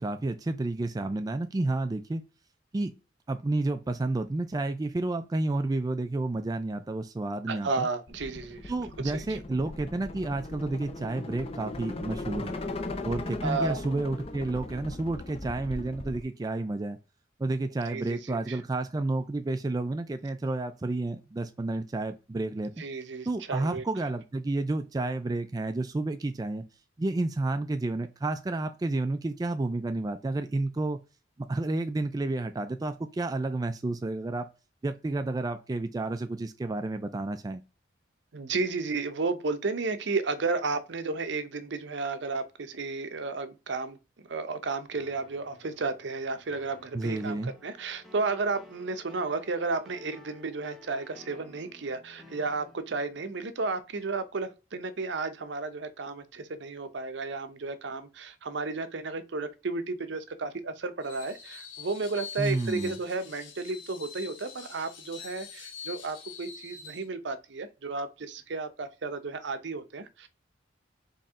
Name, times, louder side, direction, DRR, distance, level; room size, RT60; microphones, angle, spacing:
voice 1, 0.0-2.2 2.7-2.9 3.3-7.9 8.7-12.6 13.0-17.0 17.4-22.7 23.3-26.7 27.0-31.0 31.4-34.5 34.8-37.6 46.9-47.5 62.4-63.0, right 2 dB, 20° right, 0.3 m, -30 dB
voice 2, 7.5-8.7 9.1-9.4 13.4-13.8 17.9-18.6 22.8-23.8 38.3-44.0 44.3-70.3, right 3 dB, 65° right, 0.6 m, -33 dB
sound 1, 8.1-16.2, left 2 dB, 30° left, 0.5 m, -38 dB
sound 2, 44.9-53.2, left 1 dB, ahead, 0.8 m, -54 dB
Screech, 61.0-67.1, left 6 dB, 80° left, 1.0 m, -45 dB
4.3 x 3.1 x 3.6 m
head